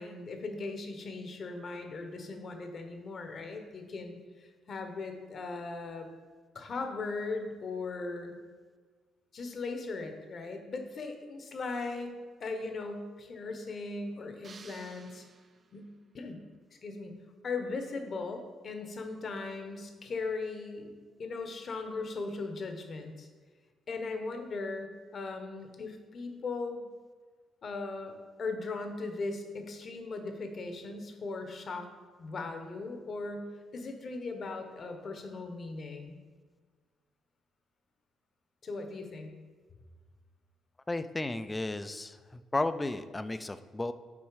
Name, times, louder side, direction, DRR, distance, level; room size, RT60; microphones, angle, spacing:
voice 1, 0.0-6.1 6.5-8.3 9.3-12.1 12.4-15.2 15.7-15.9 16.1-16.4 16.7-17.1 17.4-20.9 21.2-23.3 23.9-26.8 27.6-31.9 32.2-33.4 33.7-36.2 38.6-39.3, left 3 dB, 50° left, 5 dB, 1.0 m, -38 dB
sound 1, 14.4-16.0, right 5 dB, 45° right, 0.4 m, -54 dB
voice 2, 40.9-43.9, left 2 dB, 15° left, 12 dB, 0.4 m, -34 dB
7.1 x 4.4 x 4.8 m, 1.5 s
cardioid pair, 90°, 0 cm